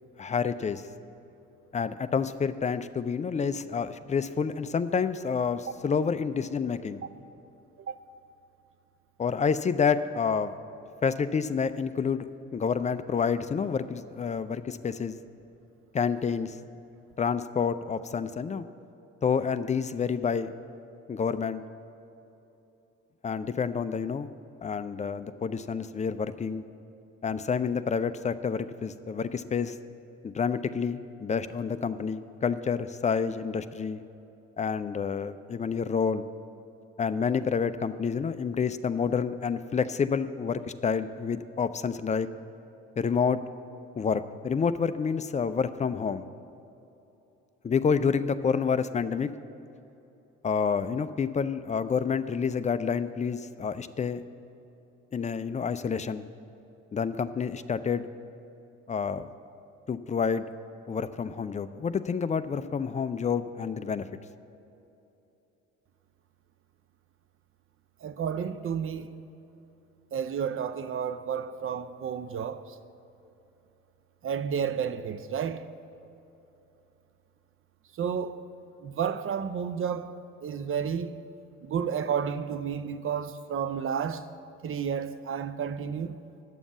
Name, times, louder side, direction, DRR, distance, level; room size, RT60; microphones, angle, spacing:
voice 1, 0.2-0.8 1.7-7.0 9.2-10.5 11.0-15.2 15.9-16.6 17.2-18.6 19.2-20.5 21.1-21.6 23.2-24.3 24.6-26.6 27.2-29.7 30.2-34.0 34.6-36.3 37.0-42.3 43.0-43.4 44.0-46.3 47.6-49.3 50.4-54.2 55.1-56.3 56.9-58.1 58.9-59.3 59.9-60.5 60.9-64.0, left 6 dB, 20° left, 0.4 m, -28 dB
voice 2, 68.0-69.1 70.1-72.8 74.2-75.7 78.0-78.4 78.8-81.2 81.6-84.3 84.6-86.2, right 7 dB, 35° right, 0.6 m, -31 dB
10.0 x 7.1 x 7.1 m
hypercardioid pair, 55°, 36 cm